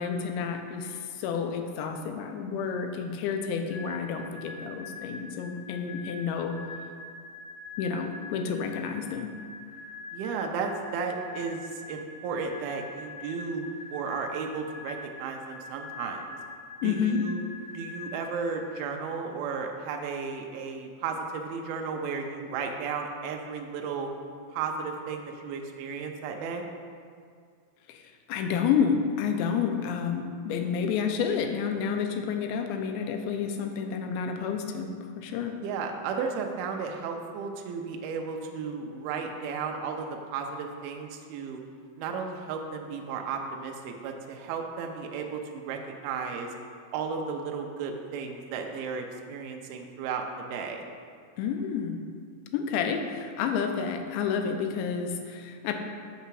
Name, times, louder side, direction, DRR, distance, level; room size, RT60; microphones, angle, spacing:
voice 1, 0.0-6.6 7.8-9.3 16.8-17.3 27.9-28.0 28.3-35.6 51.4-52.0 52.5-55.7, left 6 dB, 85° left, 5 dB, 2.9 m, -30 dB
sound 1, 3.7-19.3, left 2 dB, 60° right, 1.1 m, -44 dB
voice 2, 10.1-16.4 16.8-17.5 17.7-24.1 24.5-26.6 35.6-41.6 42.0-46.5 46.9-50.9, right 5 dB, 85° right, 2 dB, 2.2 m, -34 dB
6.7 x 6.6 x 4.6 m, 2.1 s
omnidirectional pair, 5.1 m